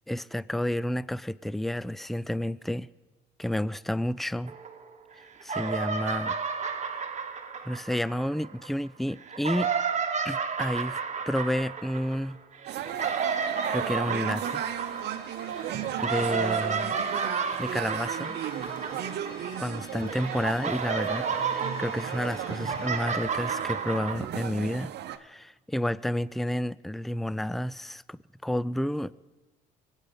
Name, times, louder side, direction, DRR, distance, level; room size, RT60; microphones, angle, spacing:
voice 1, 0.1-2.9 3.4-4.5 5.4-6.3 7.6-9.7 10.2-11.0 11.3-12.4 13.7-14.6 16.0-17.0 17.6-18.4 19.6-29.1, left 1 dB, ahead, 0.4 m, -30 dB
sound 1, 4.5-5.1 5.4-8.7 9.2-19.8 20.1-24.1, right 6 dB, 35° right, 1.6 m, -32 dB
sound 2, 12.7-25.2, right 11 dB, 60° right, 0.9 m, -35 dB
sound 3, 14.9-23.4, left 3 dB, 55° left, 2.5 m, -48 dB
24.0 x 9.1 x 5.4 m
hypercardioid pair, 60°, 20 cm